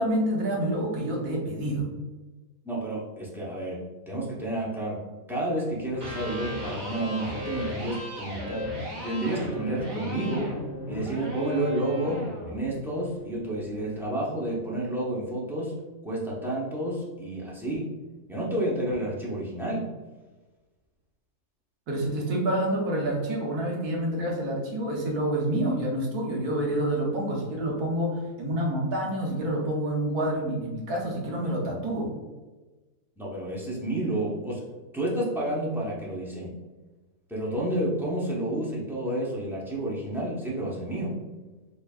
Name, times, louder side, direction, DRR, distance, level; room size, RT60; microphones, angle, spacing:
voice 1, 0.0-1.9 21.9-32.2, right 1 dB, 75° right, -1 dB, 1.4 m, -28 dB
voice 2, 2.6-3.8 4.1-5.0 5.3-8.7 9.0-10.5 10.9-15.7 16.0-17.9 18.3-19.9 33.2-36.5 37.3-41.1, right 1 dB, 5° right, -6 dB, 0.4 m, -30 dB
Electric guitar, 5.9-13.9, left 1 dB, 45° right, 1.6 m, -36 dB
4.5 x 3.3 x 2.4 m, 1.2 s
omnidirectional pair, 1.7 m